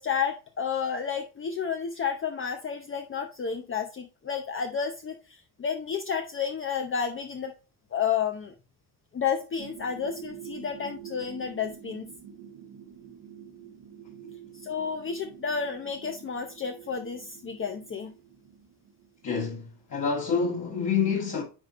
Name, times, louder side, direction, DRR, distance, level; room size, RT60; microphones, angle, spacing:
voice 1, 0.0-7.5 7.9-8.5 9.1-12.1 14.6-18.1, left 7 dB, 30° left, 0.7 m, -31 dB
sound 1, 9.6-20.0, right 9 dB, 70° right, 1.8 m, -47 dB
voice 2, 19.2-21.4, left 6 dB, 50° left, 2.1 m, -27 dB
9.3 x 4.2 x 3.0 m
cardioid pair, 115°, 40 cm